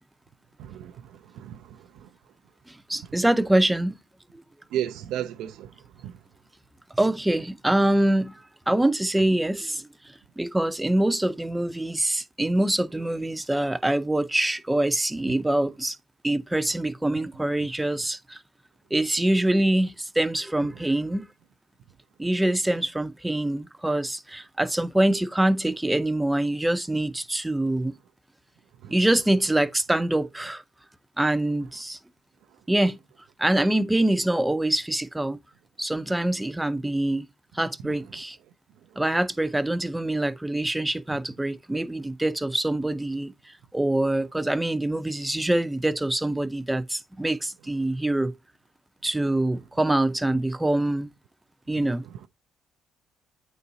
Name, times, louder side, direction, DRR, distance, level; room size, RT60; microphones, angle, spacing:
voice 1, 0.6-2.1 4.7-6.2 28.8-29.0 32.5-32.6 38.9-39.0 52.0-52.3, right 11 dB, 75° right, 0.4 m, -35 dB
voice 2, 2.7-4.0 6.9-9.9 10.4-16.0 16.2-18.4 18.9-21.3 22.2-27.9 28.9-30.6 31.2-32.0 32.7-33.0 33.4-35.4 35.8-37.3 37.5-38.4 39.0-48.3 49.0-51.1 51.7-52.0, right 1 dB, 10° right, 0.6 m, -25 dB
8.5 x 4.1 x 2.7 m
supercardioid pair, 60°, 0 cm